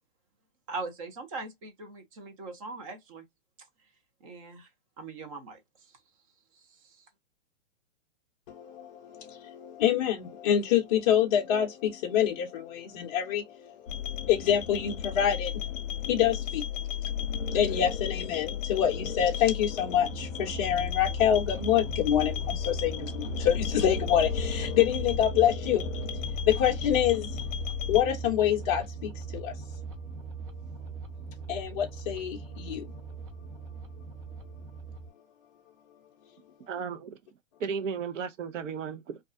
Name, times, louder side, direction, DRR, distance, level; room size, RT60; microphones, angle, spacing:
voice 1, 0.7-3.3 4.2-4.7 5.0-6.0 6.5-7.1, right 3 dB, 30° right, 0.6 m, -41 dB
voice 2, 8.5-25.9 26.5-27.4 27.8-29.5 31.5-32.9, left 10 dB, 30° left, 0.5 m, -27 dB
sound 1, 13.9-28.0, left 8 dB, 75° left, 0.6 m, -34 dB
sound 2, 20.0-35.1, right 5 dB, 45° right, 0.9 m, -39 dB
voice 3, 36.7-37.1 37.6-39.2, right 6 dB, 70° right, 0.7 m, -34 dB
2.4 x 2.2 x 2.4 m
hypercardioid pair, 145°, 39 cm